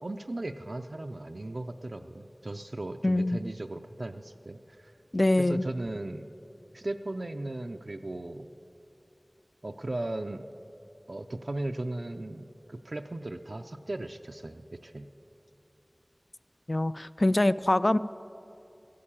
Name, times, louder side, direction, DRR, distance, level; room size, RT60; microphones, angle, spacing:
voice 1, 0.0-4.9 5.4-6.3 6.7-8.5 9.6-10.4 11.1-15.1, right 2 dB, 70° right, 5 dB, 0.4 m, -37 dB
voice 2, 3.0-3.4 5.1-5.7 16.7-18.0, left 1 dB, 45° left, 15 dB, 0.3 m, -24 dB
14.0 x 8.5 x 8.8 m, 2.8 s
wide cardioid pair, 45°, 0 cm